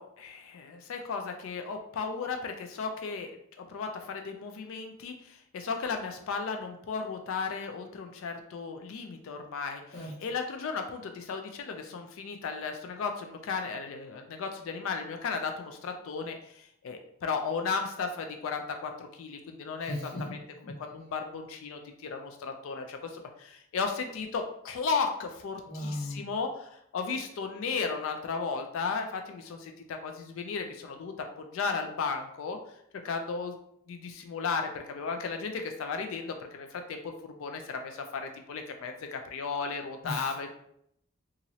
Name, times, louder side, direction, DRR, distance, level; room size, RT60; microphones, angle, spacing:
voice 1, 0.0-3.3 3.6-9.8 10.2-20.0 20.3-20.4 20.8-31.1 31.5-32.6 33.0-33.5 33.9-40.5, left 5 dB, 70° left, 5 dB, 0.3 m, -35 dB
voice 2, 19.8-20.7 25.7-26.2 40.0-40.5, left 1 dB, 45° left, -6 dB, 0.7 m, -37 dB
2.9 x 2.5 x 2.7 m, 0.73 s
head